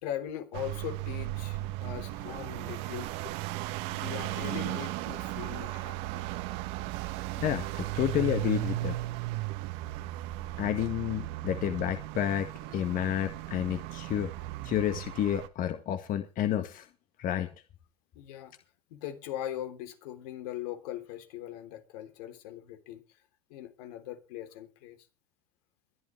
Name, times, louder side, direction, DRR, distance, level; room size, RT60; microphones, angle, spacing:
voice 1, 0.0-3.2 3.9-6.3 18.1-18.5 18.9-23.0 23.5-25.0, left 11 dB, 75° left, 3.5 m, -40 dB
sound 1, 0.5-15.5, right 18 dB, 60° right, 1.7 m, -36 dB
voice 2, 7.4-9.0 10.6-14.3 14.6-16.9 17.2-17.5, left 11 dB, 40° left, 1.9 m, -30 dB
22.5 x 11.0 x 3.4 m
supercardioid pair, 110°, 20 cm